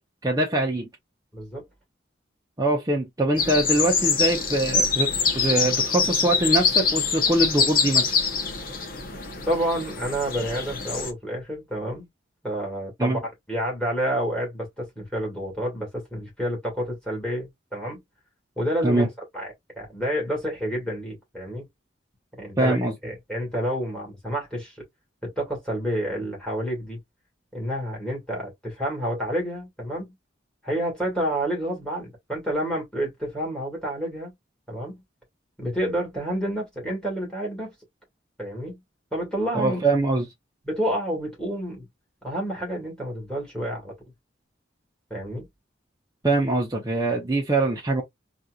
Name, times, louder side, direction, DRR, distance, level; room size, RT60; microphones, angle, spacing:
voice 1, 0.2-0.9 2.6-8.1 13.0-13.2 18.8-19.1 22.6-22.9 39.5-40.2 46.2-48.0, right 2 dB, 20° right, 0.6 m, -23 dB
voice 2, 1.3-1.6 9.5-12.1 12.4-18.0 18.6-19.1 19.3-21.7 22.4-22.8 23.0-24.8 25.2-27.0 27.5-30.1 30.6-34.3 34.7-35.0 35.6-37.7 38.4-38.8 39.1-39.8 40.6-41.9 42.2-43.9 45.1-45.5, equal, 5° left, 1.8 m, -29 dB
sound 1, 3.4-11.1, left 5 dB, 45° left, 0.7 m, -24 dB
4.2 x 2.5 x 2.3 m
head